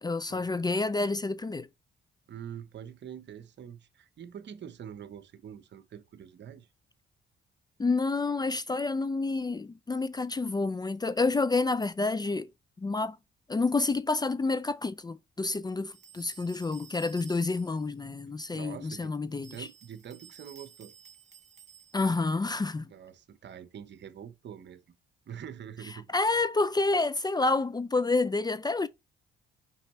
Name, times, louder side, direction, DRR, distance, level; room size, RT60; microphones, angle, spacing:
voice 1, 0.0-1.7 7.8-12.5 12.8-13.2 13.5-19.7 21.9-22.9 26.1-28.9, left 3 dB, 20° left, 0.5 m, -29 dB
voice 2, 2.3-6.7 18.5-19.1 19.5-20.9 22.9-24.8 25.3-26.4, right 8 dB, 60° right, 1.0 m, -45 dB
sound 1, 15.9-17.9 19.3-22.2, right 7 dB, 35° right, 1.2 m, -53 dB
5.8 x 5.5 x 3.2 m
supercardioid pair, 70°, 21 cm